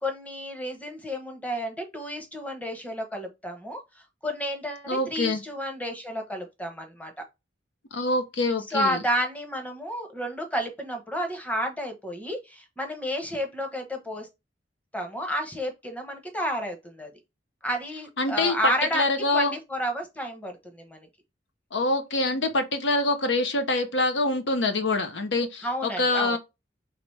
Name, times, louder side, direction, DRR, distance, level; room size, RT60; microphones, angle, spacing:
voice 1, 0.0-3.8 4.2-7.2 8.7-14.3 14.9-17.1 17.6-21.1 25.6-26.4, equal, 10° left, 0.9 m, -31 dB
voice 2, 4.9-5.4 7.9-9.0 18.2-19.6 21.7-26.4, left 2 dB, 75° left, 0.8 m, -25 dB
4.9 x 3.0 x 3.2 m
head